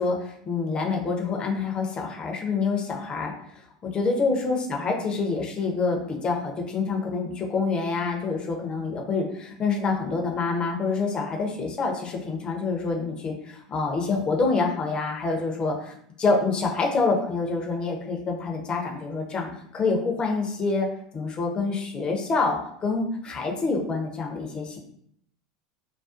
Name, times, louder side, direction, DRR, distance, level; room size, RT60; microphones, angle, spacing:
voice 1, 0.0-3.3 3.9-20.9 21.1-24.8, left 4 dB, 30° left, 1 dB, 0.6 m, -27 dB
2.4 x 2.2 x 2.4 m, 0.68 s
hypercardioid pair, 85°, 3 cm